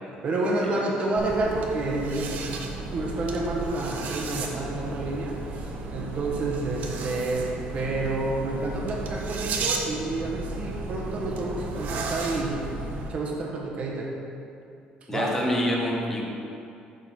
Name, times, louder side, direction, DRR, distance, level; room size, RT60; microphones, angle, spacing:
voice 1, 0.0-2.3 2.9-12.6 13.1-14.1 15.1-15.3, right 2 dB, 45° right, -1 dB, 1.3 m, -29 dB
voice 2, 0.6-1.0 15.1-16.2, left 1 dB, 15° left, -2 dB, 1.1 m, -27 dB
sound 1, 1.2-13.1, right 3 dB, 60° right, 0.8 m, -33 dB
11.5 x 3.9 x 4.5 m, 2.6 s
cardioid pair, 140°, 3 cm